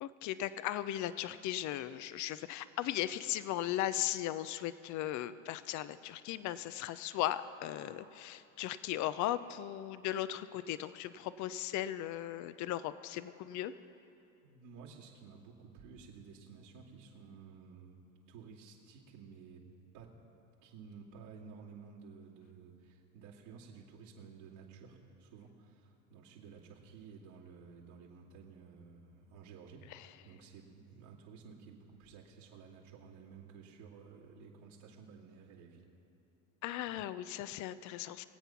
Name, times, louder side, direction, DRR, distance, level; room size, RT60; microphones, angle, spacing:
voice 1, 0.0-13.7 29.9-30.1 36.6-38.3, left 13 dB, 50° left, 14 dB, 0.6 m, -37 dB
voice 2, 14.4-18.0 18.3-19.6 19.9-20.1 20.6-35.9, right 5 dB, 75° right, -7 dB, 2.5 m, -54 dB
21.0 x 8.2 x 5.8 m, 2.7 s
hypercardioid pair, 80°, 38 cm